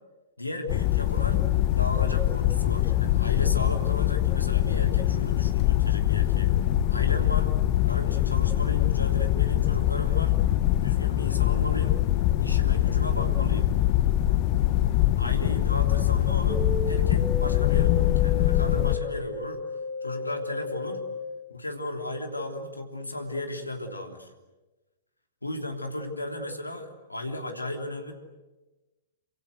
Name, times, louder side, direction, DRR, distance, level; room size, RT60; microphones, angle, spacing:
voice 1, 0.4-6.5 6.9-7.5 7.9-10.4 10.8-12.0 12.4-13.7 15.2-19.6 20.0-21.0 21.5-24.3 25.4-28.1, left 1 dB, 90° left, 4 dB, 3.2 m, -35 dB
sound 1, 0.7-19.0, left 13 dB, 40° left, 1.5 m, -23 dB
sound 2, 16.5-21.2, left 4 dB, 5° right, 2.7 m, -33 dB
28.0 x 26.0 x 8.1 m, 1.1 s
figure-of-eight pair, 110°, 0 cm